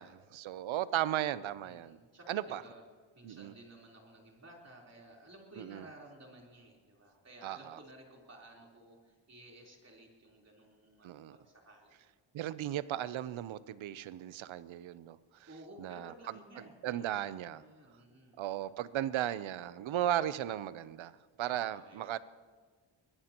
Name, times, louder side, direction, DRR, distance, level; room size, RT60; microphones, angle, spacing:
voice 1, 0.0-2.0 2.3-2.6 3.2-3.5 5.6-5.9 7.4-7.8 11.0-11.4 12.3-15.2 15.8-17.6 18.4-22.2, right 12 dB, 80° right, 16 dB, 0.7 m, -36 dB
voice 2, 1.6-2.8 3.2-12.0 15.5-19.1 21.4-22.2, right 1 dB, 35° right, -1 dB, 3.8 m, -55 dB
23.0 x 20.0 x 3.0 m, 1.5 s
cardioid pair, 110°, 47 cm